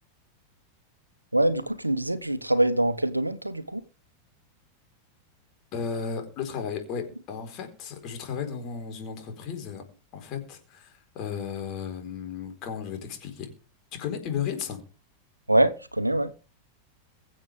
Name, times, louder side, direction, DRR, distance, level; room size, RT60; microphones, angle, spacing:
voice 1, 1.3-3.8 15.5-16.3, right 1 dB, 85° right, 1.0 m, -24 dB
voice 2, 5.7-9.8 10.1-13.5 13.9-14.8, left 7 dB, 40° left, 4.4 m, -34 dB
23.0 x 7.7 x 3.5 m
figure-of-eight pair, 90°, 0 cm